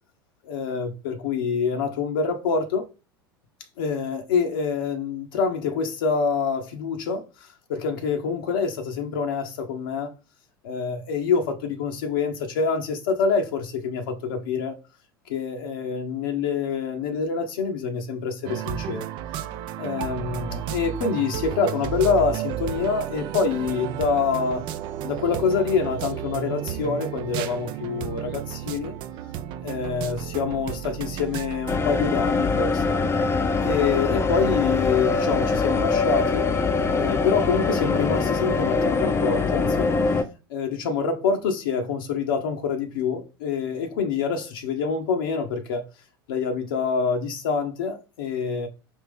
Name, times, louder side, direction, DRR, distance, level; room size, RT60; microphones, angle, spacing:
voice 1, 0.4-2.9 3.8-10.1 10.6-14.7 15.3-19.1 19.8-24.6 25.0-28.9 29.6-33.0 33.6-36.5 36.9-39.9 40.5-45.9 46.3-48.7, left 5 dB, 60° left, 0.8 m, -26 dB
sound 1, 18.4-31.9, right 11 dB, 40° right, 0.5 m, -32 dB
sound 2, 31.7-40.2, left 4 dB, 20° left, 0.6 m, -23 dB
5.3 x 2.8 x 3.6 m
figure-of-eight pair, 75°, 13 cm